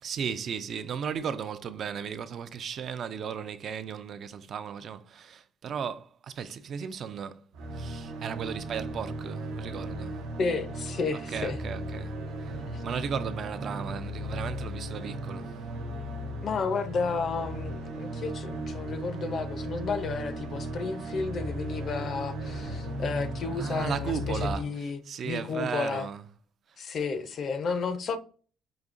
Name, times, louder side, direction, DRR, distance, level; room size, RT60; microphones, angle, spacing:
voice 1, 0.0-7.4 7.7-10.2 11.3-15.6 23.5-26.3, right 7 dB, 45° right, 0.3 m, -36 dB
sound 1, 7.5-24.5, right 1 dB, 85° right, 0.8 m, -36 dB
voice 2, 10.4-11.6 12.7-12.8 16.4-26.1 26.8-28.2, left 4 dB, 40° left, 0.4 m, -32 dB
5.0 x 2.7 x 2.5 m
cardioid pair, 165°, 0 cm